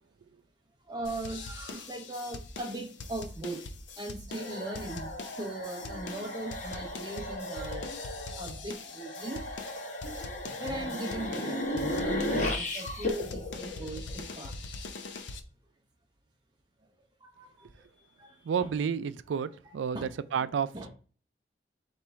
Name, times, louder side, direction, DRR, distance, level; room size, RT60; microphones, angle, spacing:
voice 1, 0.9-3.6 4.0-7.9 8.4-9.4 10.6-11.6 11.9-14.5 17.2-17.7 18.2-18.7 19.9-20.5 20.7-20.9, right 2 dB, 25° right, 0.5 m, -39 dB
sound 1, 1.0-15.4, left 3 dB, 80° left, 0.5 m, -43 dB
sound 2, 4.3-14.5, left 1 dB, 40° left, 0.9 m, -35 dB
voice 2, 18.4-20.9, right 7 dB, 85° right, 0.3 m, -31 dB
4.3 x 3.0 x 3.4 m
head